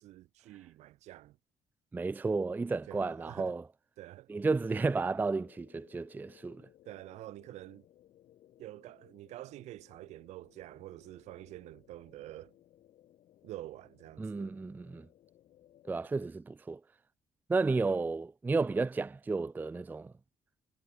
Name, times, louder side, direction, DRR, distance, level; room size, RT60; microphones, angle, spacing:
voice 1, 0.0-1.4 2.9-3.5 4.0-4.3 6.9-7.8 8.6-12.5 13.4-14.5, right 15 dB, 75° right, 2.0 m, -47 dB
voice 2, 1.9-3.6 4.3-6.6 14.2-15.1 15.9-16.8 17.5-20.1, right 3 dB, 15° right, 0.3 m, -32 dB
sound 1, 4.4-16.3, left 12 dB, 70° left, 3.6 m, -63 dB
supercardioid pair, 65°, 12 cm